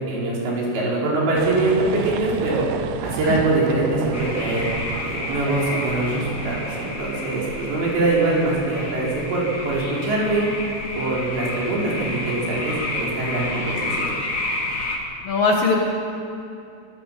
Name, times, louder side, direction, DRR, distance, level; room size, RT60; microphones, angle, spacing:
voice 1, 0.1-2.7 3.0-4.7 5.0-10.5 11.0-14.1, right 2 dB, 60° right, -4 dB, 6.6 m, -23 dB
sound 1, 1.4-7.0, right 11 dB, 90° right, 2.5 m, -33 dB
sound 2, 4.1-15.0, left 2 dB, 30° left, 2.1 m, -30 dB
voice 2, 15.2-15.8, left 4 dB, 60° left, -1 dB, 2.8 m, -20 dB
24.0 x 16.0 x 7.6 m, 2.7 s
omnidirectional pair, 5.7 m